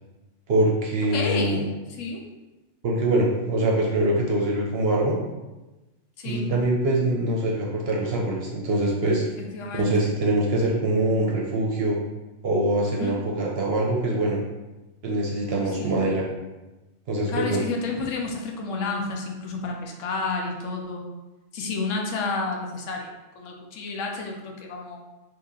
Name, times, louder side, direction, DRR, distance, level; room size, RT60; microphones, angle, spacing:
voice 1, 0.5-1.6 2.8-5.2 6.2-9.2 9.7-12.0 12.4-14.4 15.0-16.2 17.1-17.6, right 1 dB, 60° right, -2 dB, 0.7 m, -23 dB
voice 2, 1.1-2.2 6.2-6.5 9.5-10.1 12.9-13.2 15.6-16.0 17.3-21.1 21.5-25.0, left 3 dB, 75° left, 1 dB, 0.9 m, -31 dB
2.9 x 2.8 x 3.6 m, 1.1 s
omnidirectional pair, 1.4 m